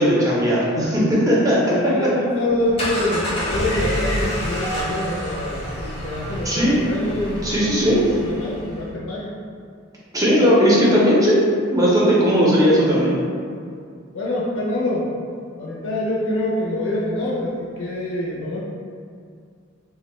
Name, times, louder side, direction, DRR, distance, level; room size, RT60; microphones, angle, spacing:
voice 1, 0.0-1.6 6.4-6.9 7.4-8.0 10.1-11.4 11.7-13.1, equal, 15° right, -7 dB, 0.5 m, -17 dB
voice 2, 1.7-7.7 8.1-9.3 14.1-15.1 15.6-18.6, left 1 dB, 80° left, -5 dB, 0.4 m, -25 dB
sound 1, 2.5-8.9, equal, 30° left, 0.6 m, -28 dB
Mallet percussion, 4.6-7.0, right 5 dB, 75° right, 0.9 m, -37 dB
2.2 x 2.0 x 3.0 m, 2.3 s
head